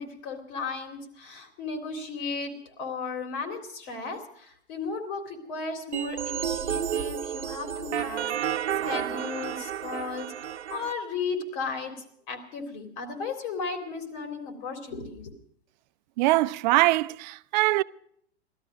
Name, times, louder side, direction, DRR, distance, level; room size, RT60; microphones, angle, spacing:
voice 1, 0.0-8.6 8.8-10.3 10.7-11.9 12.3-15.3, left 4 dB, 50° left, 3.6 m, -35 dB
sound 1, 5.9-10.9, right 9 dB, 80° right, 0.8 m, -31 dB
voice 2, 16.2-17.8, right 19 dB, 40° right, 0.5 m, -22 dB
17.5 x 13.0 x 6.2 m
hypercardioid pair, 110°, 33 cm